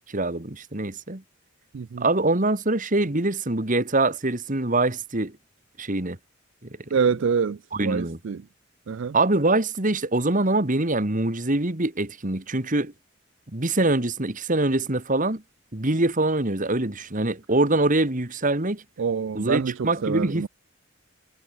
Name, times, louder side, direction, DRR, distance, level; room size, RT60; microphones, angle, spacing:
voice 1, 0.1-1.2 2.0-5.3 5.8-6.2 7.7-8.2 9.1-12.9 13.5-15.4 15.7-18.8 19.4-20.5, right 2 dB, 40° right, 1.9 m, -24 dB
voice 2, 1.7-2.0 6.9-8.4 8.9-9.2 19.0-20.5, right 6 dB, 60° right, 0.4 m, -26 dB
head